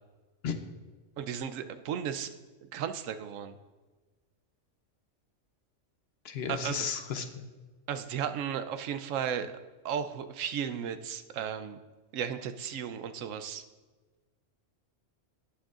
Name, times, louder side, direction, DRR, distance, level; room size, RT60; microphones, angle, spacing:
voice 1, 1.2-2.3 2.7-3.6 6.5-6.9 7.9-9.6 9.8-11.8 12.1-13.6, right 8 dB, 90° right, 10 dB, 1.0 m, -35 dB
voice 2, 6.2-7.3, left 6 dB, 60° left, 7 dB, 0.9 m, -33 dB
17.0 x 6.4 x 2.4 m, 1.3 s
omnidirectional pair, 1.3 m